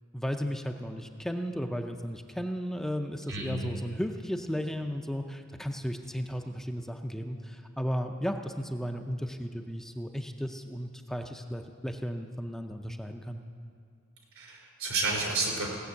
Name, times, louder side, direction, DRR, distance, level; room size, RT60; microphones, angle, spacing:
voice 1, 0.1-13.4, equal, ahead, 5 dB, 0.4 m, -34 dB
voice 2, 3.3-3.7 14.4-15.7, right 3 dB, 80° right, 0 dB, 3.5 m, -31 dB
17.0 x 6.8 x 8.1 m, 2.3 s
head